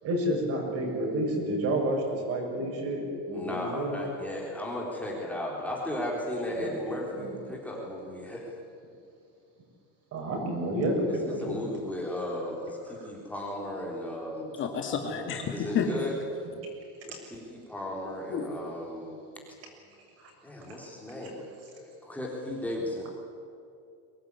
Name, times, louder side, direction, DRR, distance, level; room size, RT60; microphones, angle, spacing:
voice 1, 0.0-4.0 6.5-6.8 7.1-7.4 10.1-11.7 12.9-13.0 20.2-20.3 20.8-20.9, right 1 dB, 40° right, 1 dB, 7.0 m, -30 dB
voice 2, 3.3-8.4 11.2-14.5 15.5-16.2 17.1-19.2 20.4-21.4 21.7-23.1, left 1 dB, 5° left, -2 dB, 3.7 m, -35 dB
voice 3, 14.6-15.9 18.3-18.5, left 7 dB, 35° left, 3 dB, 2.4 m, -30 dB
23.5 x 18.5 x 9.7 m, 2.5 s
cardioid pair, 160°, 36 cm